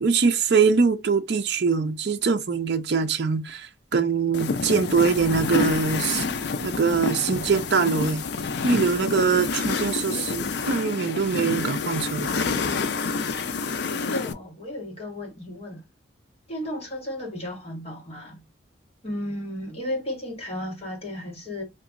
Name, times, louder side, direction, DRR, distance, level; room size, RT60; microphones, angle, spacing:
voice 1, 0.0-6.2 6.6-8.2 8.6-12.5, right 5 dB, 55° right, 0.4 m, -23 dB
sound 1, 4.3-14.3, left 4 dB, 55° left, 0.4 m, -28 dB
voice 2, 13.8-15.8 16.5-18.4 19.0-21.6, left 1 dB, 30° left, 1.3 m, -34 dB
2.9 x 2.4 x 3.5 m
head